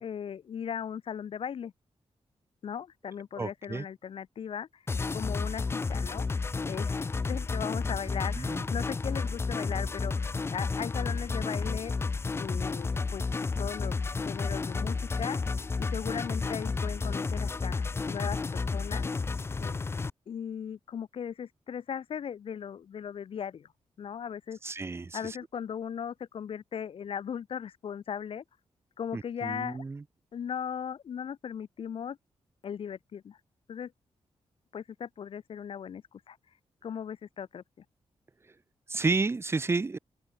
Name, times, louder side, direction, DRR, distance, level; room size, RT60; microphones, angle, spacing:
voice 1, 0.0-1.7 2.6-4.8 5.1-6.4 6.6-12.0 12.4-13.2 13.6-13.9 14.2-15.4 15.8-19.1 19.6-19.8 20.3-23.7 24.0-24.6 25.1-28.4 29.0-29.8 30.3-32.2 32.6-33.4 33.7-33.9 34.7-36.4 36.8-37.6, left 8 dB, 60° left, 0.9 m, -38 dB
voice 2, 3.3-3.8 8.4-8.6 24.6-25.4 29.1-30.0 38.9-40.0, right 3 dB, 25° right, 1.0 m, -31 dB
sound 1, 4.9-20.1, left 4 dB, 25° left, 0.5 m, -31 dB
open air
wide cardioid pair, 160°, 11 cm